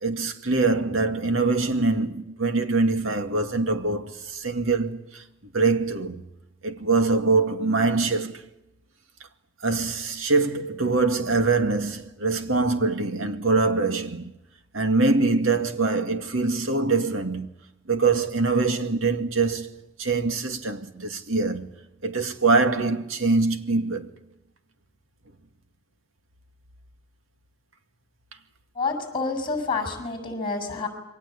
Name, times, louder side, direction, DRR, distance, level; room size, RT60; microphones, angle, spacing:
voice 1, 0.0-5.2 5.5-6.2 6.6-8.4 9.6-14.3 14.7-17.5 17.9-19.7 20.0-21.7 22.0-24.1, right 3 dB, 85° right, 2.2 m, -23 dB
voice 2, 28.8-30.9, left 4 dB, 25° left, 7.2 m, -28 dB
28.0 x 23.5 x 8.5 m
head